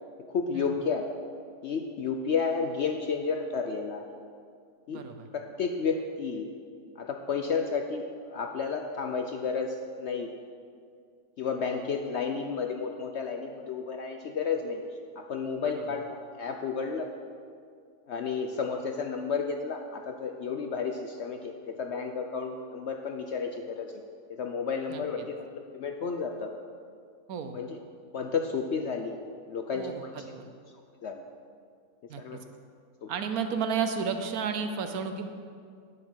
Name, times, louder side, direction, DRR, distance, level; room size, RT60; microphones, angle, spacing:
voice 1, 0.3-1.1 1.6-4.0 4.9-5.0 5.3-6.5 7.0-10.3 11.4-14.8 15.2-17.1 18.1-23.9 24.3-26.5 27.5-27.7 28.1-29.2 29.5-29.9 31.0-31.2 32.2-32.4 33.0-33.1, left 5 dB, 60° left, 4 dB, 0.7 m, -32 dB
voice 2, 4.9-5.3 15.6-15.9 24.9-25.3 27.3-27.6 29.7-30.1 30.3-30.5 32.1-32.4 33.1-35.3, right 6 dB, 70° right, 7 dB, 1.2 m, -32 dB
9.5 x 7.7 x 6.2 m, 2.2 s
omnidirectional pair, 1.7 m